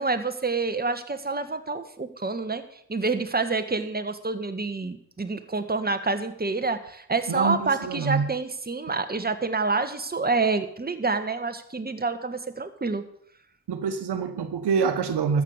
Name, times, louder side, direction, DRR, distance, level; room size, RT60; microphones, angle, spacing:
voice 1, 0.0-2.6 2.9-13.0, right 3 dB, 25° right, 8 dB, 1.7 m, -27 dB
voice 2, 7.3-8.3 13.7-15.4, right 5 dB, 70° right, 8 dB, 1.4 m, -26 dB
13.5 x 8.3 x 6.7 m, 0.68 s
supercardioid pair, 40°, 41 cm